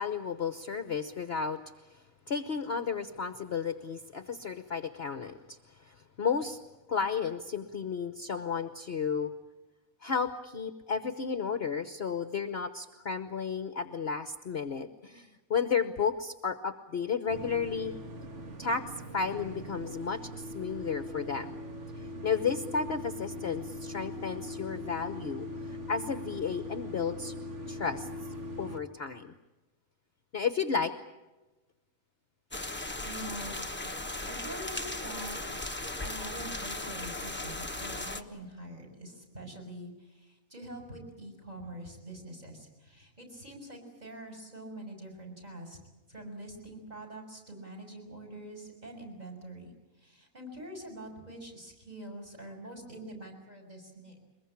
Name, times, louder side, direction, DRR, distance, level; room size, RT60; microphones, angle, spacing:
voice 1, 0.0-1.6 1.9-6.6 6.9-9.3 10.0-17.9 18.6-18.8 19.1-21.6 22.2-27.3 27.7-28.1 28.6-29.3 30.3-30.9, left 6 dB, 45° left, 9 dB, 1.1 m, -33 dB
sound 1, 17.3-28.8, left 1 dB, 50° right, 1.8 m, -41 dB
sound 2, 32.5-38.2, left 2 dB, 10° left, 1.0 m, -37 dB
voice 2, 32.5-33.6 34.1-35.7 36.0-45.8 46.1-54.2, right 1 dB, 25° right, 3 dB, 6.3 m, -45 dB
23.0 x 21.0 x 8.7 m, 1.1 s
omnidirectional pair, 1.6 m